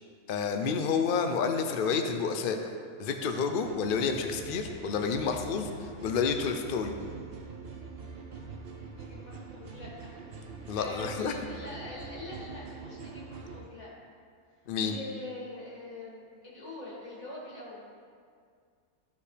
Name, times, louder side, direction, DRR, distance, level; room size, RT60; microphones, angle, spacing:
voice 1, 0.3-2.6 3.0-6.9 10.7-11.3 14.7-15.0, left 5 dB, 55° left, 5 dB, 0.6 m, -29 dB
sound 1, 3.6-13.6, right 4 dB, 50° right, 0.9 m, -44 dB
voice 2, 8.9-10.2 10.6-13.9 14.8-17.8, left 2 dB, 75° left, -7 dB, 3.0 m, -44 dB
13.5 x 5.2 x 3.3 m, 2.1 s
omnidirectional pair, 1.5 m